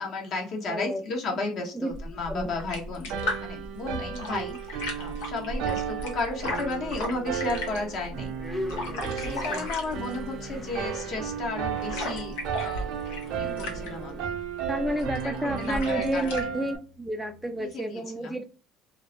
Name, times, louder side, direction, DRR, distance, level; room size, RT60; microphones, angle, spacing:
voice 1, 0.0-3.1 3.4-8.3 9.0-12.9 13.4-14.3 14.9-15.0 15.2-16.3 17.6-18.4, left 3 dB, 50° left, 0 dB, 0.9 m, -34 dB
voice 2, 0.7-1.0 1.7-1.9 2.3-2.5 9.2-9.7 14.7-18.4, right 1 dB, 5° right, 5 dB, 0.3 m, -31 dB
sound 1, 1.9-16.5, left 1 dB, 85° left, 0.7 m, -37 dB
sound 2, 3.1-16.8, right 8 dB, 70° right, 0.5 m, -34 dB
sound 3, 6.0-6.7 7.1-17.7, left 1 dB, 15° left, 0.8 m, -43 dB
2.3 x 2.0 x 2.7 m, 0.36 s
cardioid pair, 115°, 0 cm